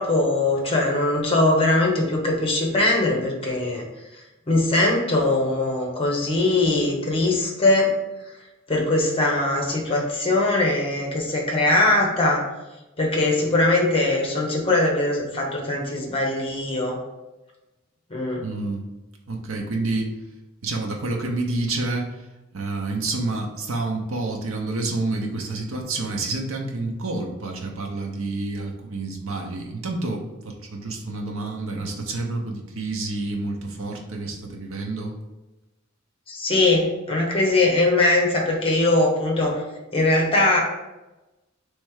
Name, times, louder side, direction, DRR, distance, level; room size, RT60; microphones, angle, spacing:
voice 1, 0.0-3.8 4.1-7.9 8.7-12.4 13.0-17.0 18.1-18.4 36.3-39.6 39.9-40.6, left 2 dB, 25° left, -1 dB, 0.9 m, -21 dB
voice 2, 18.4-18.9 19.3-20.1 20.6-22.3 22.5-35.1, right 2 dB, 80° right, 1 dB, 0.7 m, -29 dB
3.3 x 3.2 x 4.7 m, 1.0 s
head